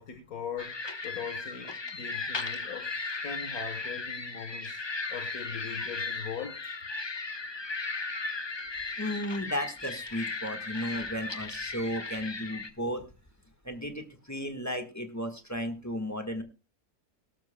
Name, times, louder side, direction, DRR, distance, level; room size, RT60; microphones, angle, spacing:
voice 1, 0.0-2.9 3.2-4.8 5.1-6.8, left 6 dB, 65° left, 1.6 m, -40 dB
sound 1, 0.6-12.7, left 3 dB, 30° left, 0.5 m, -36 dB
voice 2, 9.0-13.0 13.6-16.4, equal, 10° left, 1.4 m, -34 dB
18.0 x 12.0 x 2.2 m
omnidirectional pair, 1.7 m